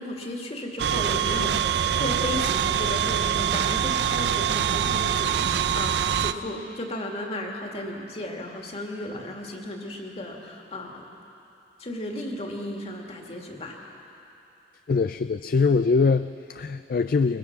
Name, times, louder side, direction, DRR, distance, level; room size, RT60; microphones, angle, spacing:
voice 1, 0.0-11.0 11.8-13.8, left 1 dB, 35° left, 1 dB, 2.2 m, -34 dB
sound 1, 0.8-6.3, right 9 dB, 70° right, 0.5 m, -24 dB
voice 2, 14.9-17.4, left 4 dB, 55° left, 11 dB, 0.4 m, -23 dB
23.0 x 22.0 x 6.1 m, 2.9 s
head